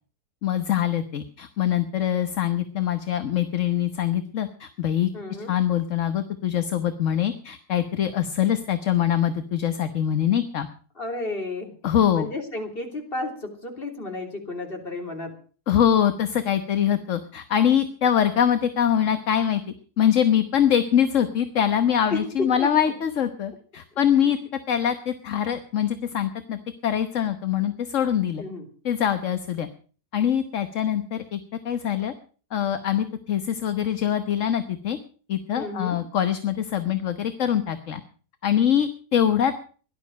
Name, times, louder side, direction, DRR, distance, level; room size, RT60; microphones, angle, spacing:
voice 1, 0.4-5.1 5.5-10.7 11.8-12.3 15.7-19.6 20.0-24.4 24.7-28.4 28.8-29.7 30.1-31.4 31.6-32.1 32.5-35.0 35.3-38.0 38.4-39.5, left 9 dB, 60° left, 9 dB, 1.4 m, -23 dB
voice 2, 5.1-5.5 11.0-11.7 12.1-15.3 22.1-22.7 24.2-24.4 28.4-28.7 35.5-36.0, left 2 dB, 40° left, 3 dB, 3.5 m, -32 dB
17.5 x 11.5 x 6.3 m, 0.42 s
omnidirectional pair, 1.6 m